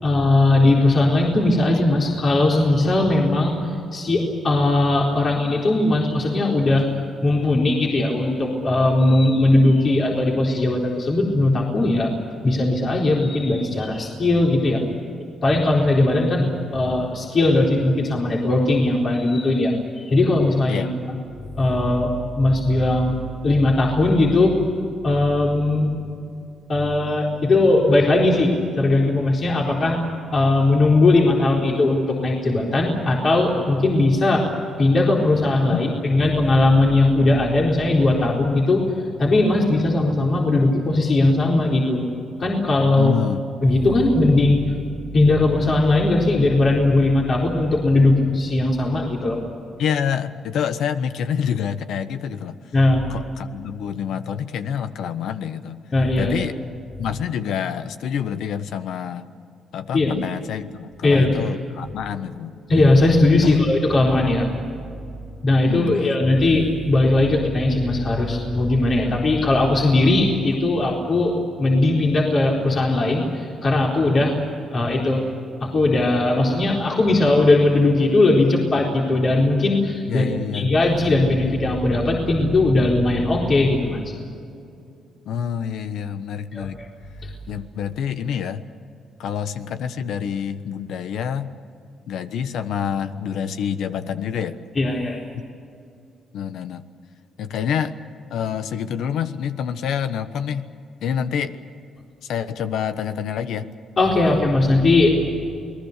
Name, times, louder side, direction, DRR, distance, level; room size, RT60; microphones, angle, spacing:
voice 1, 0.0-6.9 7.2-12.1 12.4-14.8 15.4-20.8 21.6-23.2 23.4-24.6 25.0-26.0 26.7-30.0 30.3-34.5 34.8-42.0 42.4-43.1 43.6-44.7 45.1-49.4 52.7-53.1 55.9-56.3 59.9-60.1 61.0-61.4 62.7-64.5 65.4-74.3 74.7-75.2 75.6-80.3 80.5-84.1 86.5-86.7 87.2-87.3 94.8-95.2 104.0-105.1, left 2 dB, 45° left, -2 dB, 4.1 m, -19 dB
voice 2, 20.7-21.1 35.7-35.9 43.0-43.4 49.8-52.6 53.1-55.8 56.2-56.5 57.0-59.3 59.7-62.5 63.4-63.6 65.7-66.4 80.1-80.7 85.2-86.8 87.5-88.6 89.2-91.5 92.1-94.6 96.3-96.8 97.4-97.9 98.3-100.7 101.0-101.6 102.2-103.7, left 8 dB, 80° left, 11 dB, 1.2 m, -27 dB
28.5 x 20.0 x 6.7 m, 2.5 s
cardioid pair, 90°, 0 cm